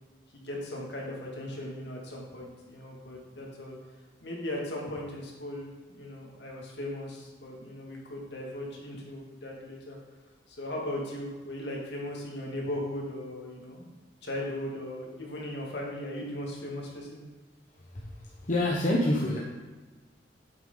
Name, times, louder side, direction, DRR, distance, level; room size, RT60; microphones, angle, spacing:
voice 1, 0.3-3.8 4.2-10.0 10.5-13.9 14.2-17.2, left 1 dB, 65° left, -2 dB, 2.3 m, -38 dB
voice 2, 17.9-19.4, left 1 dB, 45° left, -3 dB, 1.1 m, -27 dB
9.1 x 8.1 x 4.0 m, 1.3 s
head